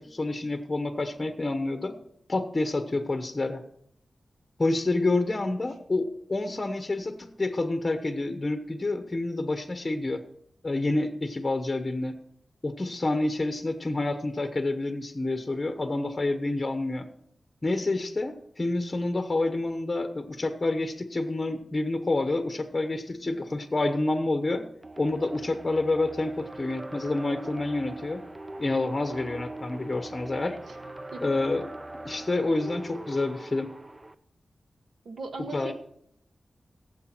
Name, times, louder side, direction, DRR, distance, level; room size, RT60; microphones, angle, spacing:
voice 1, 0.0-2.0 2.3-3.6 4.6-10.2 10.6-12.2 12.6-17.1 17.6-24.6 25.0-28.2 28.6-30.6 31.2-31.7 32.0-33.7 35.5-35.7, left 2 dB, 30° left, 7 dB, 1.0 m, -28 dB
sound 1, 24.8-34.1, right 2 dB, 25° right, 0.5 m, -41 dB
voice 2, 35.0-35.7, right 3 dB, 90° right, 6 dB, 1.5 m, -37 dB
16.5 x 7.9 x 4.5 m, 0.70 s
wide cardioid pair, 105°, 0 cm